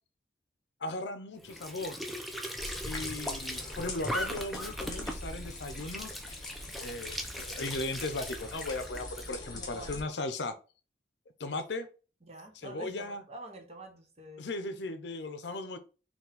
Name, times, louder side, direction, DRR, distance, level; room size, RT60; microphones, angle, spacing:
voice 1, 0.8-2.0 2.8-6.2 6.8-10.5 11.4-11.9 12.6-13.2 14.4-15.8, left 2 dB, 75° left, 0.6 m, -37 dB
Squeak / Sink (filling or washing) / Trickle dribble, 1.4-9.3, equal, ahead, 0.4 m, -39 dB
sound 1, 2.6-10.0, left 2 dB, 20° left, 0.9 m, -43 dB
voice 2, 9.5-10.1 12.2-14.5, right 1 dB, 35° right, 0.9 m, -47 dB
4.4 x 2.3 x 3.9 m
head